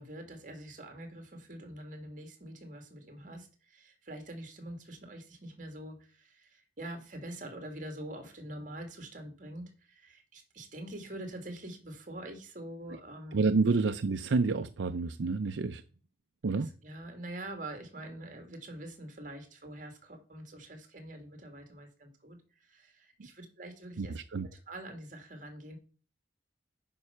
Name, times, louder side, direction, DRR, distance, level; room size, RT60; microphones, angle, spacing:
voice 1, 0.0-13.4 16.6-24.2 24.7-25.8, right 1 dB, 45° right, 2.1 m, -45 dB
voice 2, 13.3-15.8 16.4-16.7 24.0-24.5, right 4 dB, 85° right, 0.5 m, -29 dB
9.4 x 5.5 x 5.6 m
head